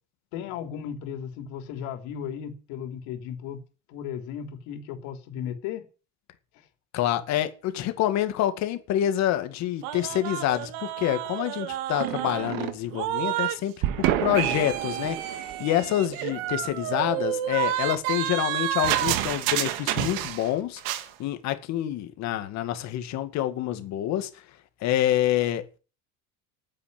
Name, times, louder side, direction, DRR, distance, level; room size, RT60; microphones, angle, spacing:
voice 1, 0.3-3.6 3.9-5.9, left 8 dB, 80° left, 3.7 m, -35 dB
voice 2, 6.9-20.8 21.2-24.3 24.8-25.6, left 12 dB, 50° left, 2.2 m, -27 dB
sound 1, 9.8-13.6 13.8-20.5 20.8-21.1, right 13 dB, 80° right, 2.1 m, -29 dB
10.0 x 9.8 x 9.7 m
cardioid pair, 180°, 36 cm